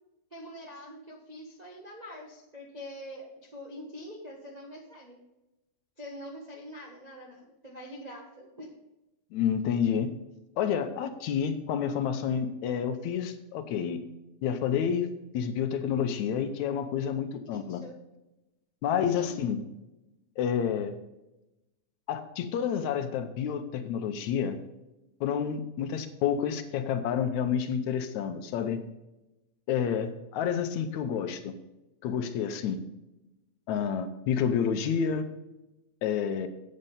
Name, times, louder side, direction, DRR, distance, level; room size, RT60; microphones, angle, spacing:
voice 1, 0.3-5.2 6.0-8.7 17.5-17.9 19.1-19.4, equal, 50° right, -2 dB, 0.4 m, -44 dB
voice 2, 9.3-10.1 10.6-14.0 14.4-17.8 18.8-19.6 20.4-20.9 22.1-24.6 25.2-28.8 29.7-31.6 32.0-32.8 33.7-35.3 36.0-36.5, left 8 dB, 75° left, 8 dB, 2.1 m, -29 dB
8.7 x 7.9 x 5.5 m, 0.96 s
omnidirectional pair, 3.5 m